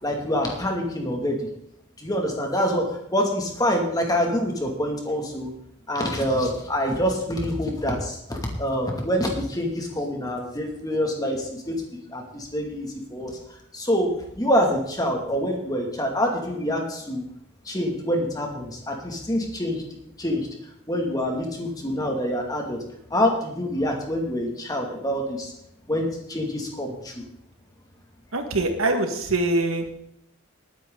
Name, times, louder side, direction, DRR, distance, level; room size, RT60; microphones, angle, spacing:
voice 1, 0.0-1.4 2.0-5.5 5.9-13.4 13.7-14.1 14.4-17.2 17.6-19.8 20.2-20.5 20.9-22.8 23.1-25.5 25.9-27.1, equal, 20° left, 1 dB, 2.4 m, -26 dB
voice 2, 28.3-30.0, right 2 dB, 85° right, 5 dB, 1.9 m, -24 dB
20.5 x 9.4 x 3.9 m, 0.77 s
head